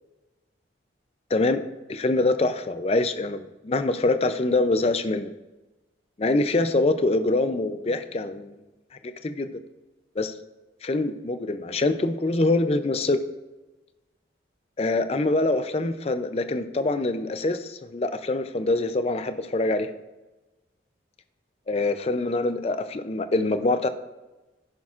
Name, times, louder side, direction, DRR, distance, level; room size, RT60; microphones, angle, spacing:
voice 1, 1.3-1.6 1.9-5.3 6.2-8.5 9.0-9.5 10.2-10.3 10.8-13.2 14.8-19.9 21.7-23.9, left 2 dB, 30° left, 10 dB, 0.4 m, -24 dB
11.5 x 10.5 x 2.4 m, 1.1 s
head